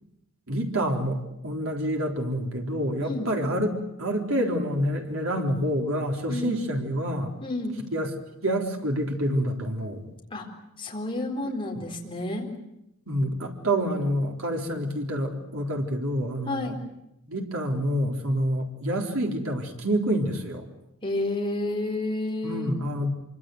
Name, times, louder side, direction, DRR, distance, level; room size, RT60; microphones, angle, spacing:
voice 1, 0.5-3.7 4.0-7.3 7.9-8.1 8.4-10.1 11.7-11.9 13.1-16.8 17.2-20.7 22.4-23.1, equal, 70° right, 1 dB, 3.9 m, -27 dB
voice 2, 7.4-7.8 10.3-10.4 10.8-12.5 16.5-16.8 21.0-22.7, left 2 dB, 25° left, 0 dB, 4.2 m, -30 dB
25.5 x 24.5 x 8.0 m, 0.84 s
head